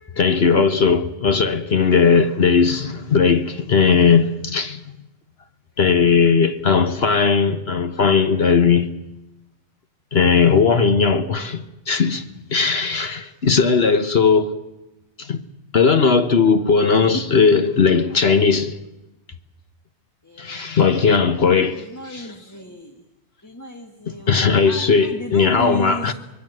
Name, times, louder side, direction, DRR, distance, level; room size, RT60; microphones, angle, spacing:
voice 1, 0.1-4.8 5.8-8.9 10.1-14.6 15.2-15.4 15.7-18.8 20.4-22.3 24.1-26.1, left 5 dB, 55° left, 1.3 m, -17 dB
voice 2, 20.2-20.8 21.9-22.9 23.4-26.1, left 1 dB, 15° left, 1.4 m, -34 dB
25.5 x 21.5 x 7.7 m
omnidirectional pair, 1.4 m